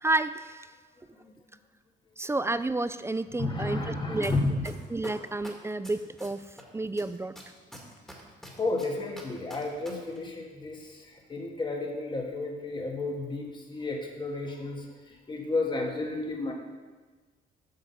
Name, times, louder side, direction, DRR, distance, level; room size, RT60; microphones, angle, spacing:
voice 1, 0.0-0.6 2.2-4.3 4.9-6.4 6.7-7.3, right 2 dB, 15° right, 13 dB, 0.3 m, -30 dB
voice 2, 3.4-4.5 8.6-16.5, left 2 dB, 25° left, 0 dB, 1.5 m, -32 dB
sound 1, 4.2-4.3 4.6-6.6 7.0-9.9 10.2-10.3, equal, ahead, 2.0 m, -45 dB
7.9 x 6.3 x 5.6 m, 1.3 s
cardioid pair, 90°, 20 cm